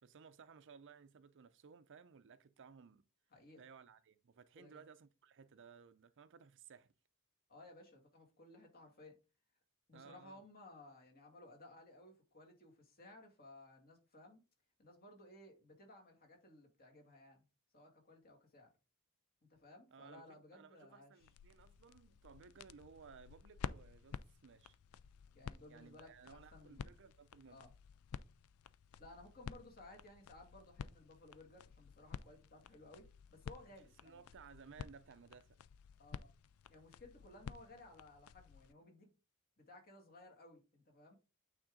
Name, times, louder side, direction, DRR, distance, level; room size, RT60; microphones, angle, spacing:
voice 1, 0.0-3.0 3.6-6.9 9.9-10.4 19.9-24.8 25.7-27.6 34.0-35.6, right 6 dB, 55° right, 0.5 m, -59 dB
voice 2, 3.3-3.7 4.6-4.8 7.5-9.2 9.9-14.4 14.8-17.4 17.7-18.7 19.5-21.3 25.3-26.1 26.5-26.9 27.5-27.7 29.0-34.2 36.0-36.3 36.7-39.1 39.6-41.2, left 2 dB, 45° left, 2.2 m, -59 dB
sound 1, 21.2-38.7, left 7 dB, 70° left, 0.4 m, -52 dB
8.8 x 3.7 x 3.7 m
head